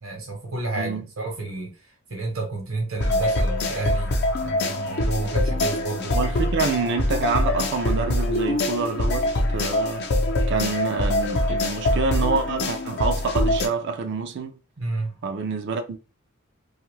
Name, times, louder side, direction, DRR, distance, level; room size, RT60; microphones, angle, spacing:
voice 1, 0.0-1.7 2.1-6.2 14.8-15.2, right 3 dB, 70° right, 0.9 m, -31 dB
voice 2, 0.8-1.1 6.1-10.1 10.5-14.5 15.2-16.0, right 4 dB, 55° right, 0.4 m, -27 dB
sound 1, 3.0-13.7, left 1 dB, 50° left, 0.5 m, -24 dB
2.7 x 2.3 x 3.1 m
head